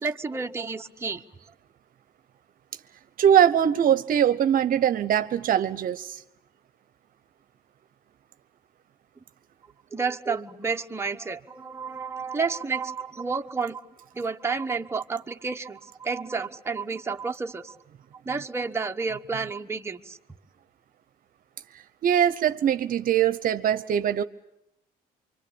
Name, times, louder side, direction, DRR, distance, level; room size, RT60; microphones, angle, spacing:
voice 1, 0.0-1.2 9.9-13.8 14.1-17.8 18.2-20.2, right 4 dB, 15° right, 1.2 m, -30 dB
voice 2, 3.2-6.2 21.7-24.2, right 9 dB, 55° right, 0.9 m, -22 dB
25.5 x 25.0 x 8.8 m
cardioid pair, 110°, 17 cm